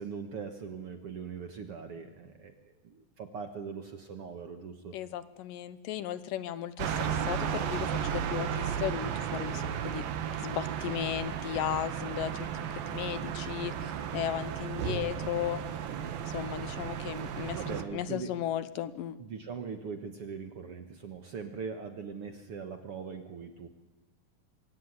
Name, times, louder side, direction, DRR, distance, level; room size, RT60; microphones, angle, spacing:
voice 1, 0.0-5.0 12.9-13.3 17.5-18.3 19.2-23.7, right 6 dB, 55° right, 7 dB, 1.8 m, -41 dB
voice 2, 4.9-10.0 10.4-12.5 12.9-15.6 16.3-19.2, left 11 dB, 75° left, 14 dB, 2.5 m, -35 dB
sound 1, 6.8-17.8, right 8 dB, 80° right, 3.2 m, -34 dB
24.0 x 17.0 x 9.7 m, 1.1 s
omnidirectional pair, 4.1 m